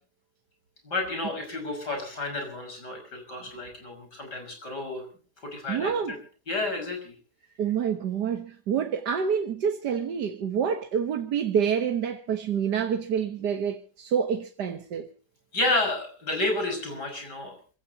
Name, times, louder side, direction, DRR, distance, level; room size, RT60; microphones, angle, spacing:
voice 1, 0.8-5.0 5.4-6.2 6.5-7.1 15.5-17.6, left 2 dB, 90° left, 6.6 m, -31 dB
voice 2, 5.7-6.2 7.6-15.1, right 7 dB, 85° right, 1.9 m, -27 dB
27.0 x 16.0 x 2.9 m
omnidirectional pair, 1.7 m